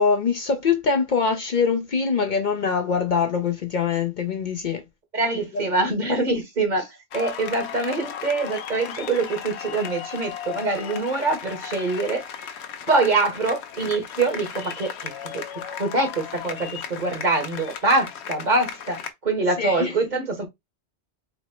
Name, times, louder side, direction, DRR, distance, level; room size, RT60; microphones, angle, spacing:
voice 1, 0.0-4.8 5.5-5.8 19.6-20.2, left 5 dB, 55° left, 0.6 m, -23 dB
voice 2, 5.1-12.2 12.9-15.3 15.6-20.5, right 3 dB, 45° right, 1.3 m, -24 dB
sound 1, 7.1-19.1, left 8 dB, 85° left, 1.0 m, -36 dB
4.2 x 2.0 x 4.2 m
omnidirectional pair, 1.1 m